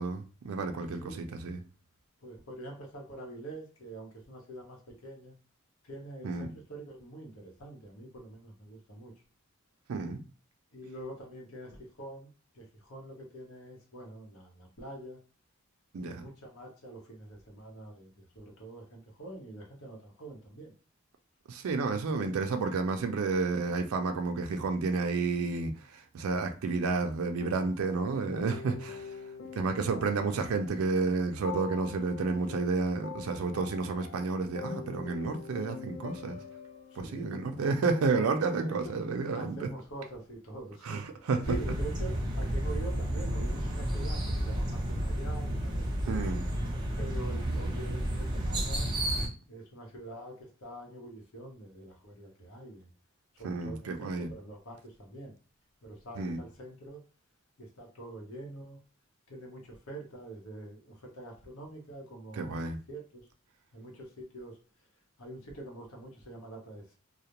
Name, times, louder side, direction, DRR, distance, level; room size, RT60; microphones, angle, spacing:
voice 1, 0.0-1.6 6.2-6.5 9.9-10.2 15.9-16.3 21.5-29.2 29.5-36.4 37.0-39.7 40.8-41.5 46.1-46.4 53.4-54.3 56.2-56.4 62.3-62.8, right 4 dB, 85° right, 0.4 m, -31 dB
voice 2, 2.2-5.3 5.8-9.1 10.7-12.3 12.5-15.2 16.0-20.7 22.1-22.3 36.9-37.8 38.6-38.8 39.3-41.0 41.5-46.3 47.0-48.9 49.5-52.9 53.3-55.3 55.8-57.0 57.6-58.8 59.3-63.2 63.7-64.6 65.2-66.9, right 2 dB, 85° left, 0.8 m, -45 dB
sound 1, 27.4-38.9, left 6 dB, 65° left, 0.4 m, -45 dB
sound 2, 41.4-49.3, right 1 dB, 20° right, 0.5 m, -31 dB
2.3 x 2.0 x 2.8 m
head